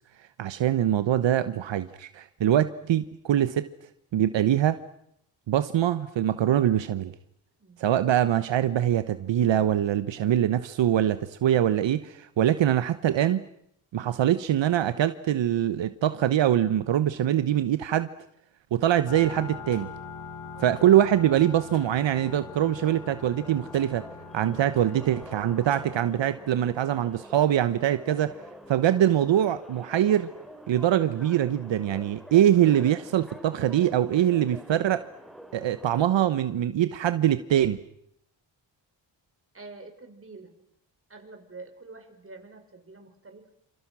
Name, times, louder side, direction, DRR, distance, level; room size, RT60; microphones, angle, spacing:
voice 1, 0.4-3.6 4.1-4.8 5.5-7.1 7.8-13.4 13.9-18.1 18.7-19.9 20.6-24.0 24.3-28.4 28.7-30.3 30.7-35.0 35.5-37.8, right 11 dB, 80° right, 12 dB, 1.1 m, -23 dB
sound 1, 19.1-26.0, left 5 dB, 85° left, 4.3 m, -43 dB
sound 2, 22.2-36.0, equal, ahead, 3.4 m, -47 dB
voice 2, 39.5-40.5 41.1-43.5, right 3 dB, 30° right, 5 dB, 5.5 m, -47 dB
28.5 x 27.5 x 6.2 m, 0.75 s
cardioid pair, 100°, 44 cm